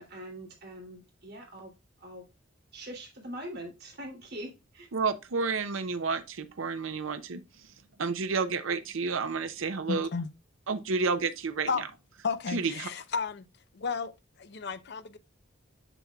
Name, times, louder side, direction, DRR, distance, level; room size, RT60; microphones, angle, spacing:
voice 1, 0.0-1.7 2.0-2.3 2.7-4.9, right 1 dB, 55° right, 2.9 m, -43 dB
voice 2, 4.9-7.4 8.0-10.1 10.7-11.9 12.5-12.9, right 4 dB, 85° right, 0.6 m, -30 dB
voice 3, 9.9-10.3 11.7-11.9 12.2-13.5 13.7-14.1 14.4-15.2, left 5 dB, 55° left, 0.6 m, -32 dB
7.2 x 6.9 x 2.3 m
head